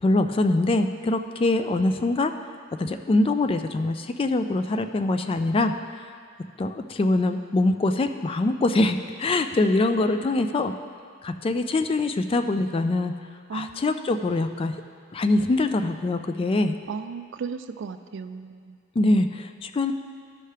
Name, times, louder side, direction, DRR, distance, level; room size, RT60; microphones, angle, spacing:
voice 1, 0.0-2.3 2.8-5.7 6.6-10.7 11.2-13.1 13.5-14.7 15.1-16.8 19.0-19.9, left 2 dB, 25° left, 8 dB, 0.3 m, -23 dB
voice 2, 13.5-13.8 16.9-18.8, right 5 dB, 65° right, 10 dB, 0.4 m, -35 dB
12.5 x 5.5 x 3.3 m, 2.1 s
head